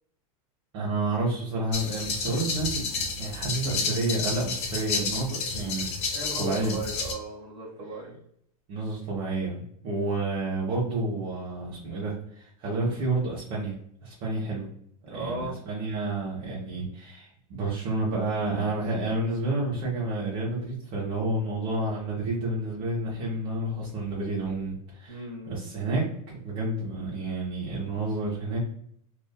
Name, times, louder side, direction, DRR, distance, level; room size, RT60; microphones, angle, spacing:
voice 1, 0.7-5.9 6.4-6.7 8.7-13.7 14.0-14.7 15.1-26.0 26.4-28.6, right 2 dB, 55° right, -4 dB, 0.9 m, -30 dB
sound 1, 1.7-7.1, left 4 dB, 35° left, 0.5 m, -31 dB
voice 2, 6.1-8.2 15.0-15.5 25.1-25.6, right 2 dB, 30° right, -3 dB, 1.3 m, -36 dB
2.5 x 2.4 x 2.2 m, 0.68 s
supercardioid pair, 130°, 19 cm